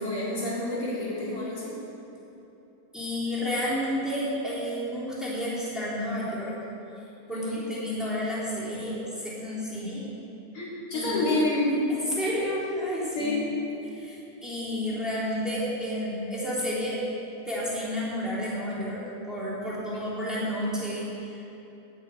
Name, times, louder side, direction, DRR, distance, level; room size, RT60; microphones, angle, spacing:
voice 1, 0.0-1.7 7.3-7.6 10.5-11.8 13.2-13.4, left 2 dB, 35° left, -7 dB, 3.9 m, -28 dB
voice 2, 2.9-6.5 7.3-10.0 10.9-11.2 11.9-13.3 13.8-17.0 17.4-19.0 19.3-21.5, equal, ahead, -8 dB, 2.9 m, -31 dB
9.8 x 9.2 x 9.1 m, 3.0 s
omnidirectional pair, 4.7 m